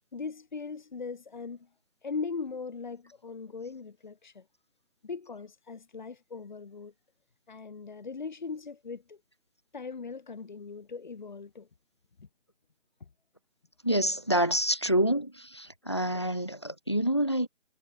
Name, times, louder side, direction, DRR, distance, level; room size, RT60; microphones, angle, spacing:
voice 1, 0.1-1.7 2.0-4.5 5.0-6.9 7.5-9.2 9.7-11.7 12.2-12.3, left 5 dB, 40° left, 5.5 m, -39 dB
voice 2, 13.8-17.5, right 1 dB, 25° left, 0.7 m, -27 dB
figure-of-eight pair, 170°, 37 cm